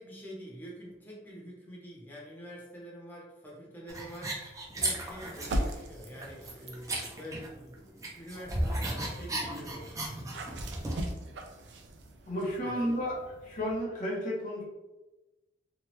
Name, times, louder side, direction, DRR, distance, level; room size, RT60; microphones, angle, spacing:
voice 1, 0.0-10.0 12.6-13.0, equal, 10° left, -5 dB, 0.8 m, -46 dB
sound 1, 3.9-5.7 6.0-7.7 8.0-11.1, right 1 dB, 20° right, 0.5 m, -35 dB
sound 2, 5.3-6.9 7.6-13.8, equal, 75° right, 0.5 m, -40 dB
voice 2, 12.3-13.2 13.4-14.6, equal, 45° left, -4 dB, 1.0 m, -32 dB
3.0 x 2.2 x 3.0 m, 1.1 s
head